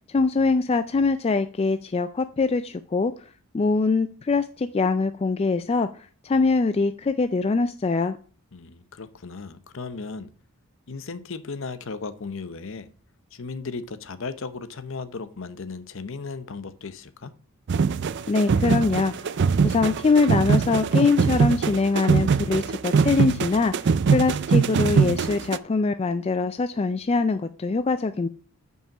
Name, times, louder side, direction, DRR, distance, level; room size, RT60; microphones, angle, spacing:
voice 1, 0.1-3.1 3.5-8.2 18.3-19.3 19.6-23.7 24.1-28.3, left 4 dB, 25° left, 10 dB, 0.3 m, -23 dB
voice 2, 8.5-10.3 10.9-12.9 13.3-17.3, left 4 dB, 60° left, 12 dB, 0.7 m, -36 dB
sound 1, 17.7-25.6, right 5 dB, 50° right, 0.4 m, -22 dB
7.3 x 5.6 x 6.0 m, 0.41 s
head